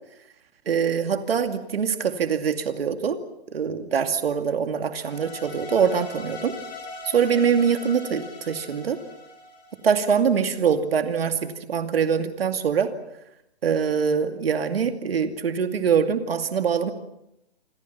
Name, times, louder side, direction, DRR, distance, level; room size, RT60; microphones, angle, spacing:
voice 1, 0.7-3.2 3.5-6.5 7.1-9.0 9.8-12.9 13.6-16.9, right 7 dB, 65° right, 7 dB, 2.5 m, -23 dB
sound 1, 5.0-10.2, left 3 dB, 15° left, 6.6 m, -40 dB
28.0 x 24.0 x 5.8 m, 0.84 s
hypercardioid pair, 170°, 32 cm